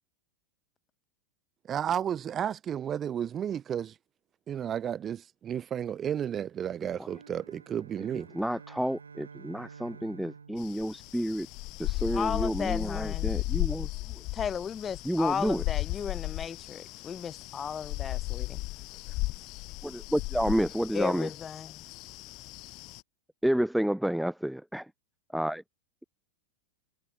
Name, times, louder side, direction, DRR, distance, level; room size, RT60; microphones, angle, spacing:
voice 1, 1.7-3.9 4.5-8.3, right 9 dB, 25° right, 1.0 m, -32 dB
sound 1, 7.0-11.7, right 5 dB, 75° right, 4.5 m, -51 dB
voice 2, 8.0-11.5 11.8-14.2 15.0-15.6 19.8-21.3 23.4-24.9 25.3-25.6, equal, ahead, 0.9 m, -30 dB
sound 2, 10.6-23.0, left 23 dB, 40° left, 0.8 m, -35 dB
voice 3, 12.1-13.3 14.3-18.6 20.9-21.8, left 7 dB, 20° left, 5.7 m, -35 dB
figure-of-eight pair, 90°, 0 cm